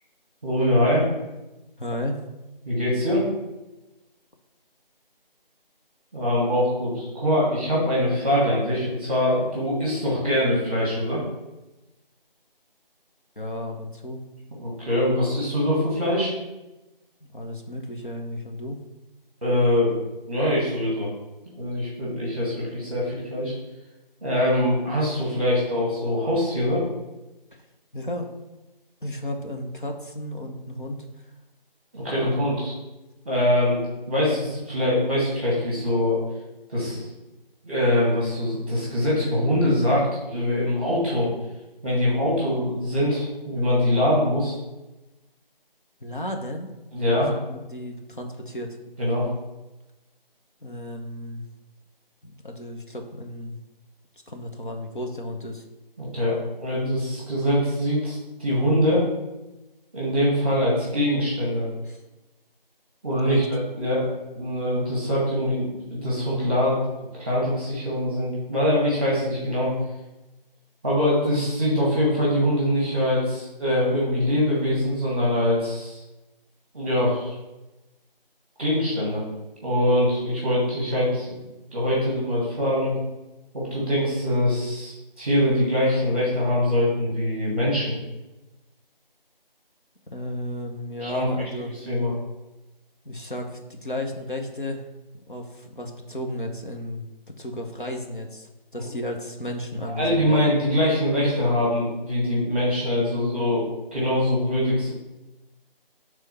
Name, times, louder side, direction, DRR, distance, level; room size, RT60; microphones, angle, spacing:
voice 1, 0.4-1.1 2.6-3.3 6.1-11.2 14.6-16.3 19.4-19.9 20.3-21.1 21.5-23.5 24.2-26.8 31.9-32.7 33.2-36.2 36.7-37.1 37.6-41.3 41.8-44.5 46.9-47.3 49.0-49.3 56.0-59.0 59.9-61.7 63.0-64.1 64.3-66.8 67.2-69.7 70.8-76.0 76.7-77.3 78.6-79.2 79.6-81.4 81.7-82.9 83.5-88.0 91.0-91.3 91.9-92.1 98.8-98.9 99.8-103.6 103.9-104.9, left 1 dB, 10° right, -5 dB, 1.4 m, -23 dB
voice 2, 1.8-2.2 13.4-14.2 17.2-18.8 27.5-27.6 27.9-28.3 29.0-31.3 32.2-32.4 46.0-46.7 47.1-48.8 50.6-51.4 52.2-53.6 54.3-55.6 61.8-62.0 63.2-63.5 90.1-91.7 93.0-94.9 95.3-100.4, left 1 dB, 60° left, 2 dB, 1.1 m, -33 dB
6.5 x 3.7 x 5.5 m, 1.0 s
figure-of-eight pair, 170°, 29 cm